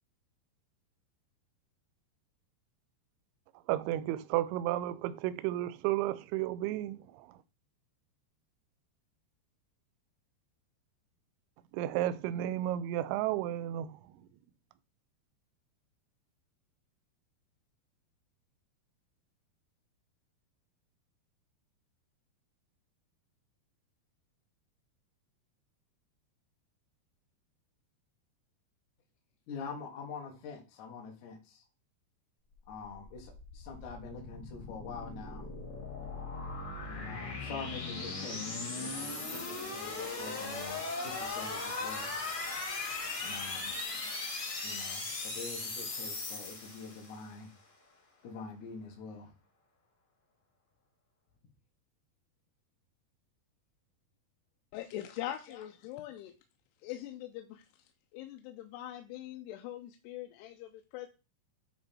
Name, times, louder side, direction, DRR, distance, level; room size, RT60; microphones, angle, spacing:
voice 1, 3.7-7.0 11.7-13.9, right 13 dB, 85° right, 2.4 m, -32 dB
voice 2, 29.5-31.6 32.7-35.5 36.9-42.1 43.2-43.7 44.6-47.5 48.2-49.3 55.5-55.6, left 4 dB, 60° left, 2.2 m, -45 dB
sound 1, 32.7-47.3, left 3 dB, 45° left, 1.5 m, -38 dB
voice 3, 54.7-56.3 56.8-57.6 58.1-61.1, left 13 dB, 85° left, 2.6 m, -42 dB
9.0 x 3.1 x 4.2 m
omnidirectional pair, 4.9 m